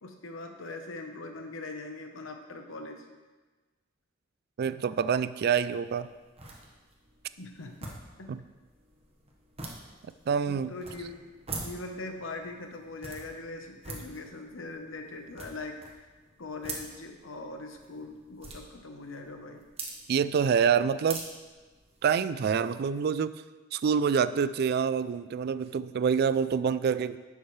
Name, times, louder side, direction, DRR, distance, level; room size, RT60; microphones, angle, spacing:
voice 1, 0.0-3.0 7.4-7.9 8.2-8.4 10.5-16.1 16.4-19.6, left 2 dB, 85° left, 4 dB, 1.0 m, -41 dB
voice 2, 4.6-6.1 8.3-8.4 10.3-10.7 20.1-21.2 22.0-23.3 23.7-27.2, right 7 dB, 55° right, 15 dB, 0.3 m, -26 dB
sound 1, 5.8-22.3, right 3 dB, 30° right, 1.2 m, -46 dB
10.5 x 7.2 x 3.2 m, 1.3 s
head